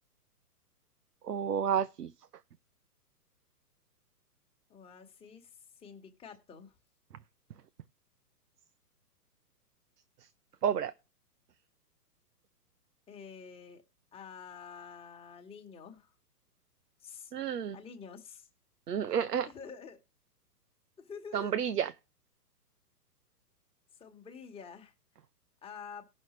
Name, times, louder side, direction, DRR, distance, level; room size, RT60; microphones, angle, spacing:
voice 1, 1.2-2.1 10.6-10.9 17.3-17.8 18.9-19.5 21.3-21.9, right 8 dB, 75° right, 0.8 m, -30 dB
voice 2, 4.7-5.5 5.8-6.7 13.1-13.8 14.1-16.1 17.0-17.3 17.7-18.5 19.4-20.0 21.0-21.6 24.0-24.9 25.6-26.0, left 6 dB, 10° left, 1.5 m, -48 dB
18.0 x 6.4 x 3.1 m
hypercardioid pair, 125°, 48 cm